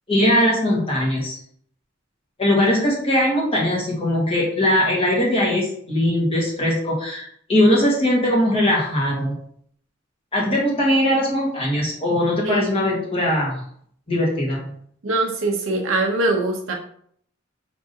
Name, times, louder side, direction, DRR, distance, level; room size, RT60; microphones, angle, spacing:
voice 1, 0.1-1.4 2.4-9.3 10.3-13.6 14.1-14.6, left 1 dB, 30° left, -3 dB, 1.5 m, -20 dB
voice 2, 12.4-12.8 15.0-16.7, right 2 dB, 75° right, 1 dB, 0.7 m, -22 dB
5.1 x 3.6 x 2.7 m, 0.63 s
head